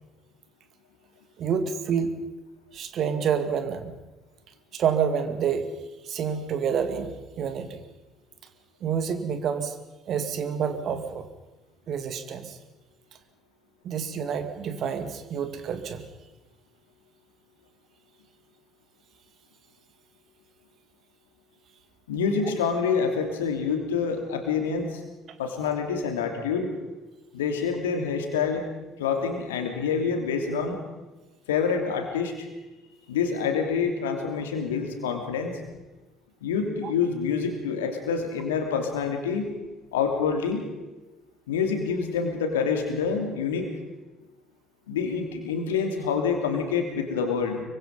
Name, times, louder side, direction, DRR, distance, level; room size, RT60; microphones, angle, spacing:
voice 1, 1.4-2.2 2.7-3.9 4.7-5.7 6.1-7.8 8.8-9.7 10.1-11.2 11.9-12.6 13.8-16.1, right 7 dB, 50° right, 9 dB, 2.1 m, -28 dB
voice 2, 22.1-25.0 25.4-26.7 27.3-28.6 29.0-30.8 31.5-32.5 33.1-35.6 36.4-39.5 39.9-40.7 41.5-43.7 44.9-47.6, left 6 dB, 75° left, 5 dB, 3.0 m, -27 dB
24.5 x 24.0 x 5.5 m, 1.1 s
figure-of-eight pair, 50°, 0 cm